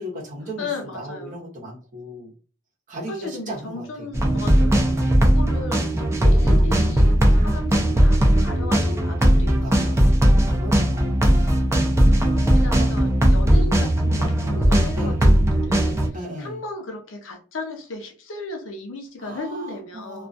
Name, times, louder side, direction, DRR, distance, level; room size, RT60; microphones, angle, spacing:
voice 1, 0.0-2.3 2.9-4.1 4.8-5.1 9.3-11.3 11.9-13.1 14.9-15.2 16.1-16.6 19.2-20.3, equal, 40° right, -4 dB, 0.8 m, -37 dB
voice 2, 0.6-1.4 3.1-10.1 12.4-16.0 16.4-20.3, left 2 dB, 80° left, 3 dB, 0.6 m, -36 dB
sound 1, 4.1-16.1, equal, 15° right, 0.4 m, -18 dB
2.3 x 2.3 x 2.5 m, 0.38 s
head